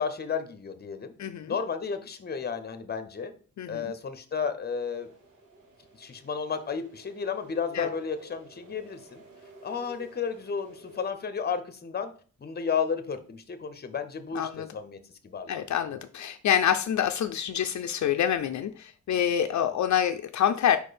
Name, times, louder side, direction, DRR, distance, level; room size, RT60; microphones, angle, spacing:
voice 1, 0.0-1.1 1.5-3.3 3.7-5.1 6.0-9.2 9.6-12.1 12.4-15.5, left 6 dB, 35° left, 10 dB, 0.7 m, -32 dB
voice 2, 1.2-1.6 3.6-3.9 7.7-7.9 14.3-14.7 15.5-20.8, left 9 dB, 70° left, 7 dB, 0.5 m, -26 dB
sound 1, 4.8-11.1, right 1 dB, 80° right, 2.0 m, -51 dB
4.9 x 4.3 x 5.0 m, 0.42 s
wide cardioid pair, 165°, 30 cm